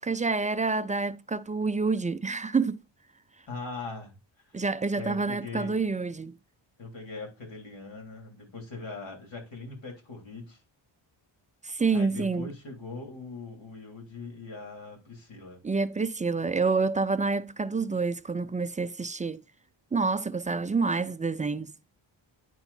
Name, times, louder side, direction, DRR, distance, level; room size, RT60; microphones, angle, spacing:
voice 1, 0.0-2.8 4.5-6.4 11.6-12.5 15.6-19.4 19.9-21.7, right 4 dB, 20° right, 0.3 m, -28 dB
voice 2, 3.5-4.2 4.5-4.6 5.0-5.7 6.8-10.6 11.9-15.6, left 3 dB, 65° left, 3.6 m, -41 dB
9.8 x 4.3 x 4.2 m
cardioid pair, 85°, 48 cm